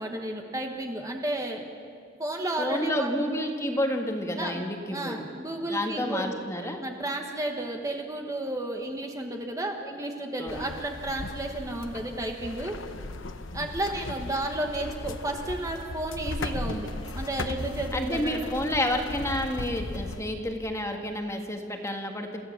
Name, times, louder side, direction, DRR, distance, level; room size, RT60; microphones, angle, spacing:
voice 1, 0.0-1.7 2.2-3.2 4.4-4.7 4.9-6.4 6.8-12.8 13.5-16.9 17.1-18.5, right 1 dB, 15° right, 2 dB, 1.4 m, -32 dB
voice 2, 2.6-5.2 5.7-6.8 10.4-10.7 17.9-22.4, left 1 dB, 15° left, 3 dB, 1.7 m, -30 dB
sound 1, 10.5-20.2, left 2 dB, 80° left, 1.0 m, -37 dB
28.5 x 15.0 x 7.3 m, 2.3 s
head